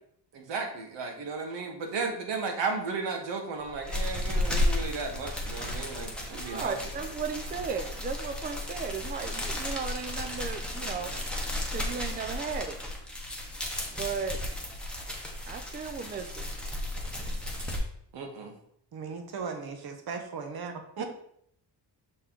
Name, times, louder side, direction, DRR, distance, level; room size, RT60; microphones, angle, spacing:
voice 1, 0.3-6.8 18.1-18.5, right 4 dB, 85° right, 3 dB, 1.4 m, -34 dB
sound 1, 3.6-17.8, left 1 dB, ahead, 1.0 m, -34 dB
voice 2, 6.3-11.1 11.7-12.8 13.9-14.4 15.4-16.5 21.0-21.1, right 5 dB, 25° right, 7 dB, 0.4 m, -35 dB
voice 3, 18.9-21.1, right 5 dB, 60° right, 5 dB, 1.1 m, -37 dB
6.7 x 4.3 x 3.7 m, 0.67 s
wide cardioid pair, 175°, 43 cm